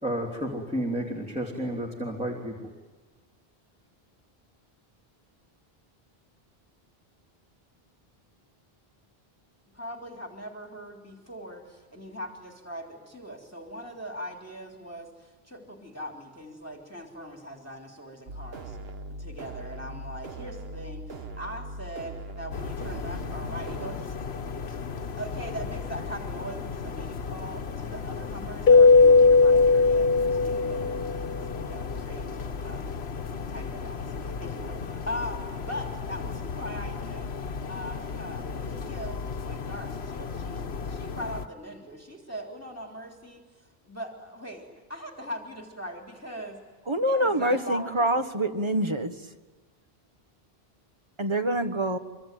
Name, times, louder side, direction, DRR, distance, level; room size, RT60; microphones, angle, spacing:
voice 1, 0.0-2.7, right 1 dB, 5° right, -1 dB, 3.2 m, -31 dB
voice 2, 9.7-18.8 19.2-24.1 25.0-32.3 32.6-32.9 33.5-37.3 37.7-46.6 47.1-48.1, equal, 15° left, 2 dB, 3.3 m, -40 dB
sound 1, 18.3-24.1, right 1 dB, 70° right, 1.6 m, -40 dB
sound 2, 22.5-41.5, left 5 dB, 85° left, 1.4 m, -35 dB
Keyboard (musical), 28.7-31.2, left 4 dB, 60° left, 1.5 m, -17 dB
voice 3, 46.9-49.1 51.2-52.0, right 1 dB, 25° right, 9 dB, 1.6 m, -25 dB
25.5 x 25.0 x 9.1 m, 1.3 s
omnidirectional pair, 1.0 m